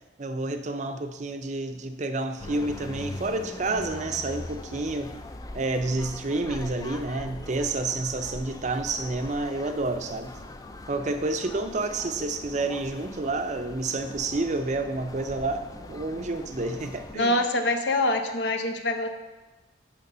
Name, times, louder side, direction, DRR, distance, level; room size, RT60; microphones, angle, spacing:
voice 1, 0.2-5.1 5.5-10.3 10.9-17.4, right 2 dB, 40° right, 8 dB, 0.5 m, -29 dB
sound 1, 2.4-17.2, left 2 dB, 20° left, 0.4 m, -41 dB
voice 2, 17.1-19.1, left 1 dB, 70° left, 6 dB, 0.8 m, -25 dB
6.7 x 5.8 x 5.4 m, 1.1 s
head